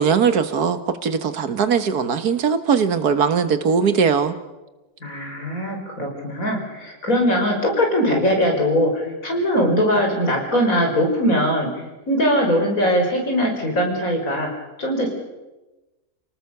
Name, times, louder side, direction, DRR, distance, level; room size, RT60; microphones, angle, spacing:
voice 1, 0.0-4.3, right 6 dB, 80° right, 11 dB, 1.9 m, -20 dB
voice 2, 5.0-11.7 12.1-14.5 14.8-15.1, equal, 60° left, 1 dB, 5.8 m, -21 dB
29.5 x 18.5 x 6.8 m, 1.1 s
omnidirectional pair, 1.6 m